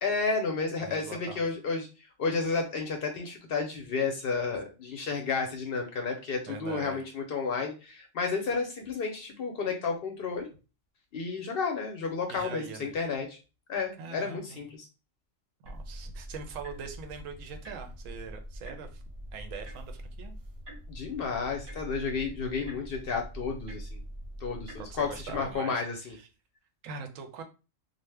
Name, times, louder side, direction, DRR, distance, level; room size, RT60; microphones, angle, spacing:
voice 1, 0.0-1.9 2.2-10.5 11.1-13.4 13.7-14.9 20.9-24.0 24.4-26.2, left 4 dB, 65° left, 3 dB, 0.6 m, -32 dB
voice 2, 0.8-1.4 6.5-7.1 12.3-12.9 14.0-14.6 15.6-19.0 19.3-20.4 24.8-26.3 26.8-27.4, right 6 dB, 90° right, 6 dB, 1.0 m, -42 dB
sound 1, 15.6-25.6, equal, 50° right, 0.7 m, -44 dB
2.6 x 2.0 x 3.2 m, 0.32 s
omnidirectional pair, 1.3 m